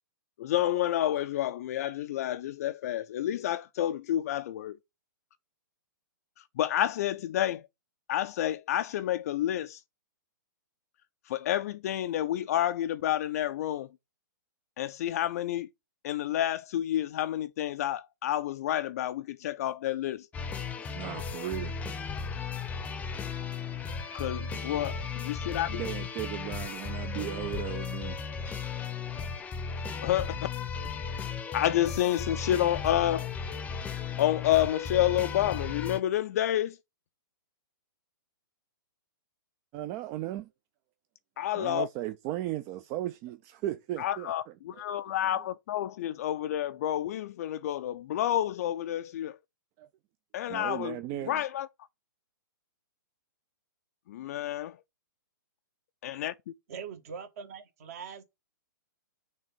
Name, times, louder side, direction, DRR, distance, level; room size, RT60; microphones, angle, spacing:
voice 1, 0.4-4.8 6.4-7.6 8.1-9.8 11.3-13.9 14.8-15.7 16.0-20.3 24.1-25.8 30.0-30.4 31.5-33.3 34.2-36.8 41.4-41.9 44.0-49.4 50.3-51.0 51.2-51.7 54.1-54.8 56.0-56.3, left 12 dB, 45° left, 0.4 m, -29 dB
sound 1, 20.3-36.0, left 5 dB, 15° left, 0.7 m, -36 dB
voice 2, 20.8-21.7 25.7-28.2 29.1-29.3 39.7-40.5 41.5-44.3 44.7-44.8 49.8-49.9 50.5-51.4, right 14 dB, 30° right, 0.4 m, -36 dB
voice 3, 56.7-58.2, right 6 dB, 45° right, 1.3 m, -42 dB
6.2 x 3.5 x 5.9 m
figure-of-eight pair, 120°, 11 cm